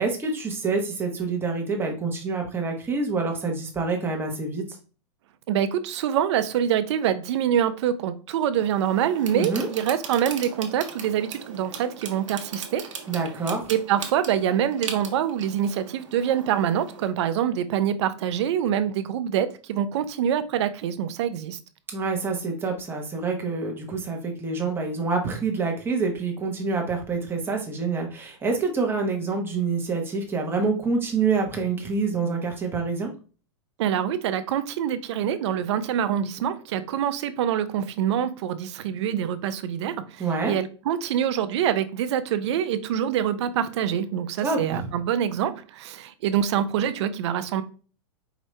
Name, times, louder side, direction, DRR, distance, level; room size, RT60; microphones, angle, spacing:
voice 1, 0.0-4.6 9.3-9.7 13.1-13.7 21.9-33.1 40.2-40.6 44.4-44.9, right 4 dB, 15° right, 1.1 m, -27 dB
voice 2, 5.5-12.8 13.7-21.6 33.8-47.6, right 9 dB, 65° right, 0.5 m, -25 dB
sound 1, 8.5-17.1, right 6 dB, 90° right, 1.0 m, -39 dB
4.9 x 2.7 x 3.2 m
hypercardioid pair, 130°, 16 cm